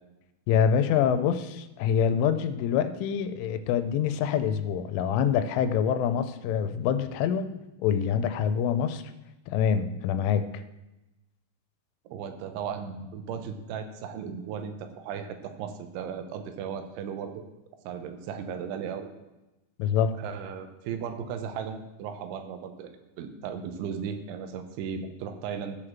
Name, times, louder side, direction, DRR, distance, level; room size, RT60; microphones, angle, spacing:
voice 1, 0.5-7.5 7.8-9.0 9.5-10.5 19.8-20.2, left 8 dB, 90° left, 11 dB, 3.2 m, -25 dB
voice 2, 12.1-17.4 17.8-19.1 20.1-25.8, right 7 dB, 80° right, 8 dB, 3.2 m, -36 dB
14.0 x 5.0 x 7.2 m, 1.0 s
omnidirectional pair, 5.5 m